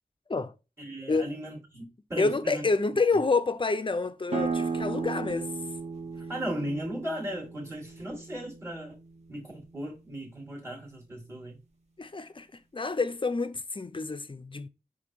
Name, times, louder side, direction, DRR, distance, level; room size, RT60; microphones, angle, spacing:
voice 1, 0.8-2.7 6.3-9.0 9.3-11.6, equal, 20° right, 1.3 m, -36 dB
voice 2, 2.2-5.5 12.0-14.7, left 3 dB, 30° left, 0.3 m, -28 dB
sound 1, 4.3-9.7, right 4 dB, 45° right, 0.7 m, -35 dB
4.4 x 2.5 x 2.6 m
wide cardioid pair, 55°, 16 cm